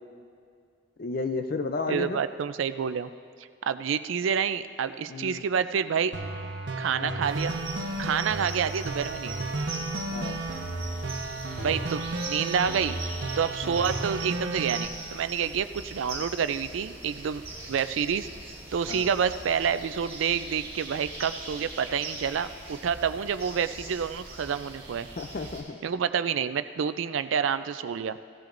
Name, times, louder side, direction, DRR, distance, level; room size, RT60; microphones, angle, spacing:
voice 1, 1.0-2.2 5.1-5.4 7.0-7.2 10.1-10.4 18.9-19.1 25.2-25.8, left 3 dB, 50° left, 7 dB, 0.5 m, -32 dB
voice 2, 1.9-3.1 3.6-6.1 6.8-7.5 8.0-9.4 11.6-13.0 13.4-17.4 17.7-18.3 18.7-25.1 25.8-28.2, right 7 dB, 90° right, 12 dB, 0.4 m, -28 dB
sound 1, 6.1-14.8, right 2 dB, 75° right, 1.0 m, -33 dB
sound 2, 7.2-25.6, right 2 dB, 30° right, 2.2 m, -41 dB
16.5 x 13.5 x 2.6 m, 2.3 s
head